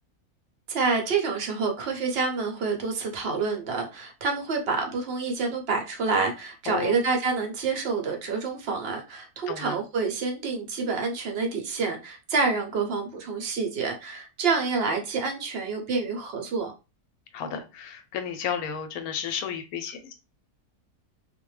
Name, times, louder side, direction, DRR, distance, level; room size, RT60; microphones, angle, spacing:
voice 1, 0.7-16.7, right 4 dB, 60° right, 3 dB, 0.7 m, -28 dB
voice 2, 9.5-9.8 17.3-20.1, left 8 dB, 75° left, 8 dB, 1.0 m, -32 dB
2.5 x 2.1 x 3.1 m, 0.29 s
omnidirectional pair, 1.6 m